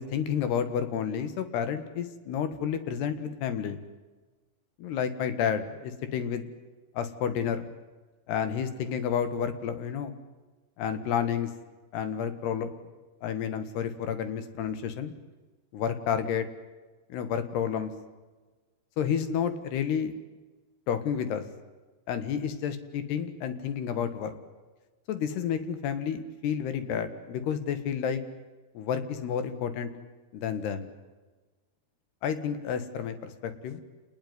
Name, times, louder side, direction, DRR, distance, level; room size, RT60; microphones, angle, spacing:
voice 1, 0.0-3.8 4.8-6.4 7.0-7.7 8.3-10.1 10.8-11.5 11.9-12.7 13.2-15.1 15.7-16.5 17.1-17.9 19.0-20.1 20.9-21.4 22.1-24.4 25.1-28.2 28.8-29.9 30.3-30.9 32.2-33.8, left 8 dB, 75° left, 10 dB, 3.8 m, -30 dB
28.5 x 20.5 x 9.6 m, 1.3 s
omnidirectional pair, 4.7 m